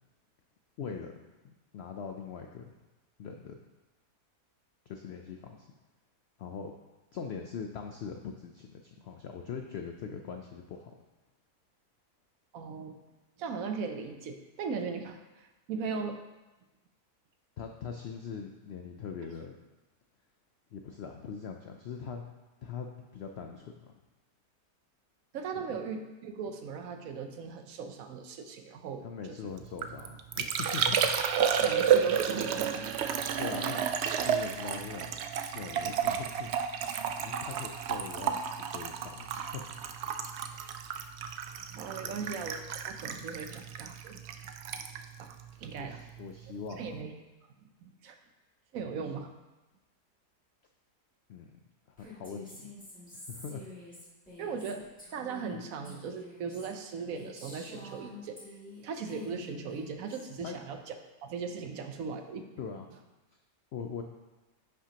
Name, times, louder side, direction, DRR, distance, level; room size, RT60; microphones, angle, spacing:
voice 1, 0.8-1.1 1.4-2.7 3.2-3.6 4.9-5.7 6.4-6.7 7.1-10.9 17.6-19.6 20.7-22.2 22.6-22.9 23.1-24.0 29.0-31.1 33.4-34.0 34.2-35.2 35.5-36.5 37.2-38.4 38.7-39.7 42.0-42.2 45.8-46.9 48.8-48.9 51.3-51.5 51.9-52.7 53.1-53.7 60.4-60.6 62.6-62.8 63.7-64.0, left 6 dB, 80° left, 4 dB, 0.5 m, -41 dB
voice 2, 12.5-13.0 13.4-16.2 25.3-29.5 31.2-33.0 41.7-44.5 45.2-46.0 46.8-47.1 47.8-48.2 48.7-49.3 54.4-58.4 58.8-61.0 61.2-62.5, right 5 dB, 65° right, 6 dB, 1.0 m, -38 dB
Liquid, 29.6-46.2 46.5-47.0, right 8 dB, 85° right, 0.5 m, -31 dB
Female speech woman speaking, 52.0-58.8 59.1-60.3, left 2 dB, 5° left, 1.9 m, -48 dB
10.0 x 6.0 x 2.8 m, 1.1 s
omnidirectional pair, 1.7 m